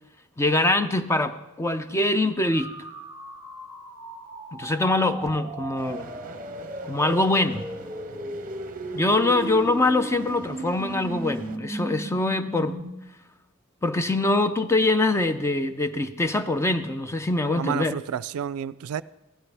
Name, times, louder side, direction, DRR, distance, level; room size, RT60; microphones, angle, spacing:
voice 1, 0.4-2.7 4.5-6.1 6.8-7.7 8.9-12.8 13.8-17.9, left 2 dB, 15° left, 10 dB, 0.5 m, -23 dB
sound 1, 2.5-12.8, right 2 dB, 10° right, 1.6 m, -36 dB
sound 2, 5.8-11.6, right 3 dB, 40° right, 0.7 m, -44 dB
voice 2, 17.6-19.0, right 8 dB, 85° right, 18 dB, 0.3 m, -30 dB
16.5 x 12.0 x 3.4 m, 0.96 s
head